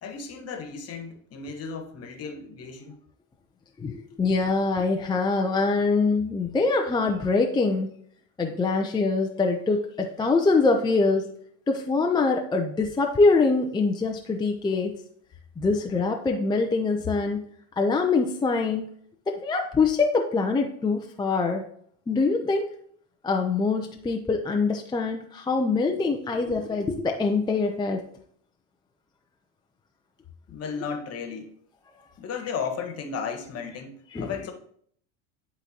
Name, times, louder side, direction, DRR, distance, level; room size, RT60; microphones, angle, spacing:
voice 1, 0.0-3.0 3.9-4.0 30.5-31.5 32.2-34.5, left 6 dB, 40° left, 4 dB, 1.4 m, -34 dB
voice 2, 3.8-7.9 8.4-11.3 11.7-14.9 15.6-17.5 17.8-18.9 19.3-21.6 22.1-22.7 23.2-28.0 34.1-34.3, left 3 dB, 10° left, 2 dB, 0.6 m, -24 dB
11.0 x 4.0 x 2.9 m, 0.63 s
hypercardioid pair, 95°, 38 cm